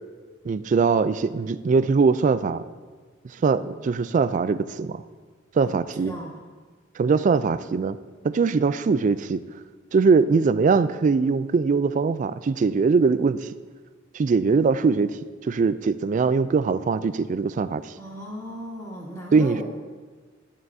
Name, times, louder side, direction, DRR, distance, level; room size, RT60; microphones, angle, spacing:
voice 1, 0.5-2.6 3.4-5.0 5.6-6.1 7.0-8.0 8.2-9.4 9.9-13.5 14.1-15.1 15.4-17.9 19.3-19.6, right 4 dB, 40° right, 14 dB, 0.3 m, -21 dB
voice 2, 5.6-6.4 18.0-19.6, equal, 15° left, -6 dB, 2.3 m, -37 dB
12.5 x 10.5 x 2.7 m, 1.4 s
head